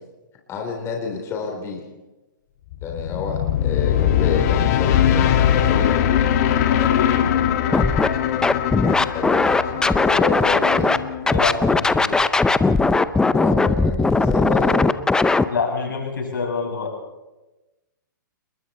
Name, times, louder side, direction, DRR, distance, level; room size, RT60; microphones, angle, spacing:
voice 1, 0.5-1.8 2.8-6.3 9.1-11.0 13.3-14.9, left 5 dB, 25° left, 1 dB, 3.5 m, -29 dB
sound 1, 2.7-11.8, left 10 dB, 45° left, 2.1 m, -21 dB
voice 2, 6.7-7.5 11.3-12.2 15.5-16.9, left 5 dB, 75° left, 0 dB, 7.2 m, -26 dB
Scratching (performance technique), 7.7-8.1 8.4-11.0 11.3-15.4, left 3 dB, 5° left, 0.6 m, -18 dB
29.0 x 21.5 x 4.2 m, 1.1 s
hypercardioid pair, 125°, 11 cm